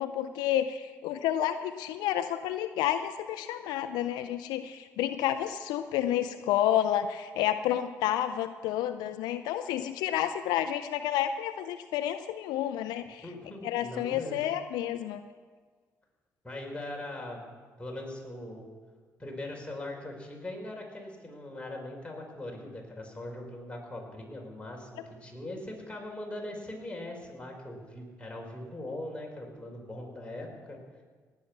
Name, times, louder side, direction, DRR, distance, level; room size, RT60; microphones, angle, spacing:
voice 1, 0.0-13.2 13.6-15.2, left 11 dB, 85° left, 11 dB, 0.5 m, -30 dB
voice 2, 13.2-14.5 16.4-17.4 17.8-18.7 19.2-30.8, left 1 dB, 15° left, 0 dB, 4.8 m, -40 dB
18.5 x 8.7 x 6.0 m, 1.5 s
supercardioid pair, 60°, 7 cm